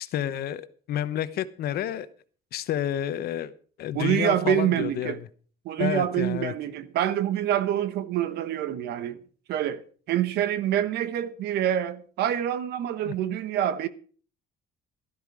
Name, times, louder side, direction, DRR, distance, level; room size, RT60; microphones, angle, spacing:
voice 1, 0.0-2.1 2.5-3.5 3.8-5.2 5.8-6.5 13.0-13.1, left 11 dB, 65° left, 1.0 m, -30 dB
voice 2, 3.9-5.2 5.6-9.2 9.5-9.8 10.1-13.9, right 11 dB, 75° right, 1.2 m, -26 dB
13.0 x 12.0 x 4.8 m
cardioid pair, 110°, 17 cm